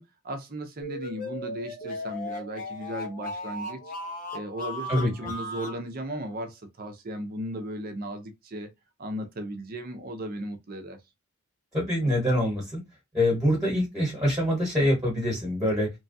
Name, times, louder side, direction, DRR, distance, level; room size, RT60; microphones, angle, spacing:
voice 1, 0.0-3.8 4.3-8.7 9.0-11.0, right 1 dB, 40° right, 0.5 m, -36 dB
sound 1, 0.8-5.8, left 1 dB, 35° left, 0.6 m, -36 dB
voice 2, 11.7-12.8 13.1-15.9, left 1 dB, 15° right, 1.2 m, -25 dB
3.0 x 2.3 x 2.6 m
head